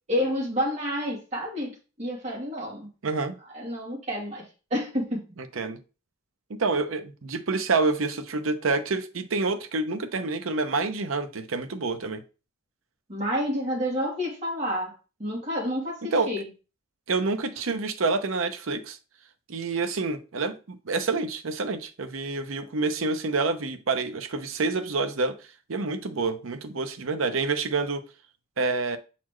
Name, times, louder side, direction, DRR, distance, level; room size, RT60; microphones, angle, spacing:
voice 1, 0.1-2.9 3.5-4.4 4.7-5.2 13.1-14.9 15.2-16.5, equal, 35° right, 2.7 m, -29 dB
voice 2, 3.0-3.4 5.6-5.8 6.5-12.2 16.1-16.3 17.1-19.0 19.5-25.3 25.7-28.0 28.6-29.0, right 3 dB, 85° right, 0.7 m, -27 dB
7.3 x 4.2 x 3.1 m
head